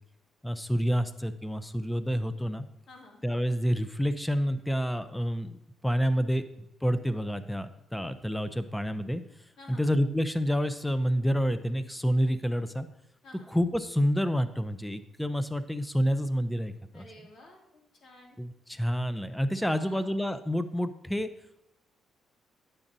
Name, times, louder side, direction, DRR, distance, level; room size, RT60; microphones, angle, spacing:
voice 1, 0.4-2.7 3.2-6.5 6.8-9.2 9.7-12.9 13.5-17.0 18.4-21.3, equal, 5° left, 11 dB, 0.5 m, -28 dB
voice 2, 2.9-3.2 9.6-9.9 13.2-13.5 16.9-17.6 18.0-18.4 19.7-20.2, left 2 dB, 60° left, -1 dB, 2.3 m, -51 dB
9.7 x 7.3 x 2.7 m, 0.84 s
cardioid pair, 90°, 0 cm